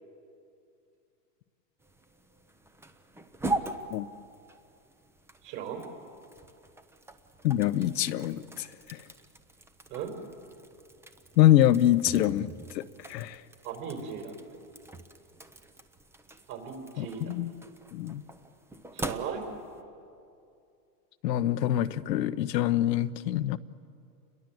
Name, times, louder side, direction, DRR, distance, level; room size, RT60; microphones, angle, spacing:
sound 1, 1.8-19.8, right 2 dB, 5° right, 0.7 m, -42 dB
voice 1, 5.4-5.8 9.9-10.1 13.6-14.3 16.5-17.3 18.9-19.4, right 7 dB, 40° right, 3 dB, 5.3 m, -37 dB
voice 2, 7.4-9.0 11.4-13.4 17.0-17.5 17.9-18.2 21.2-23.6, left 13 dB, 80° left, 13 dB, 1.0 m, -25 dB
29.0 x 22.0 x 7.8 m, 2.5 s
supercardioid pair, 145°, 49 cm